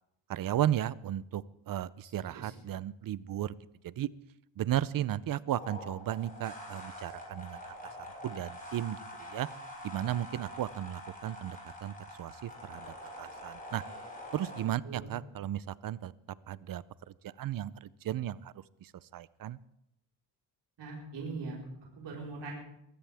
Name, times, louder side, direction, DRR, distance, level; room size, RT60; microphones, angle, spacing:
voice 1, 0.3-3.5 3.8-4.1 4.6-7.7 8.2-9.5 9.8-13.8 14.3-16.1 16.5-16.8 17.2-18.5 18.8-19.6, right 12 dB, 50° right, 19 dB, 0.6 m, -35 dB
sound 1, 5.6-14.6, left 1 dB, 20° left, 7.1 m, -46 dB
voice 2, 20.8-21.6 22.0-22.5, right 4 dB, 70° right, -3 dB, 4.6 m, -41 dB
22.5 x 15.0 x 3.5 m, 0.81 s
cardioid pair, 135°, 43 cm